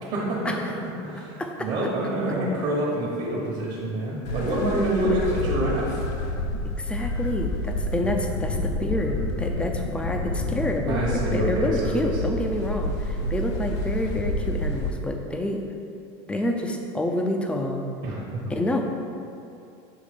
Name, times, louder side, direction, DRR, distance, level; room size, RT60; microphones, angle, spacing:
voice 1, 0.0-0.6 1.0-6.0 10.9-12.2 13.2-13.3 18.0-18.2, right 1 dB, 50° right, -5 dB, 1.2 m, -27 dB
voice 2, 1.4-1.7 5.0-5.2 6.6-15.6 16.3-17.9 18.5-18.8, left 1 dB, 10° left, 3 dB, 0.4 m, -28 dB
sound 1, 4.2-14.9, left 1 dB, 80° left, 0.7 m, -29 dB
6.6 x 3.1 x 5.1 m, 2.6 s
supercardioid pair, 140°, 14 cm